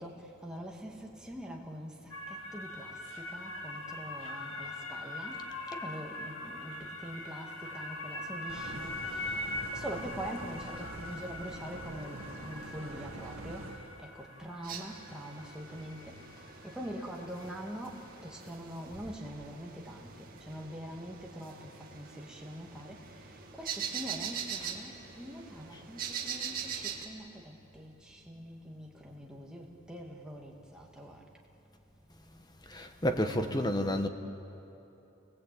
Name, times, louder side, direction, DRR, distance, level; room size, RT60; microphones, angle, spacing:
voice 1, 0.0-31.2, equal, 5° right, -1 dB, 2.2 m, -44 dB
sound 1, 2.1-18.5, left 2 dB, 75° left, 2.7 m, -42 dB
sound 2, 8.5-14.0, right 2 dB, 80° right, 1.6 m, -45 dB
sound 3, 14.6-27.1, right 7 dB, 40° right, 2.3 m, -43 dB
voice 2, 32.7-34.1, equal, 20° left, 7 dB, 1.2 m, -30 dB
29.0 x 20.0 x 8.7 m, 3.0 s
head